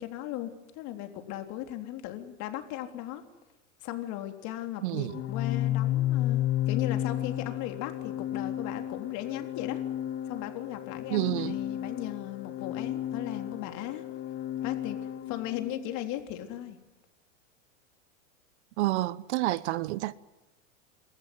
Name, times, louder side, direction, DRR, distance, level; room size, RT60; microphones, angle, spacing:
voice 1, 0.0-3.2 3.8-9.8 10.3-14.0 14.6-15.0 15.3-16.8, left 13 dB, 50° left, 3.6 m, -37 dB
voice 2, 4.8-5.1 11.1-11.6 18.8-20.1, right 17 dB, 60° right, 1.1 m, -29 dB
Organ, 5.1-15.9, left 12 dB, 30° left, 0.9 m, -32 dB
28.0 x 14.0 x 9.5 m
hypercardioid pair, 120°, 38 cm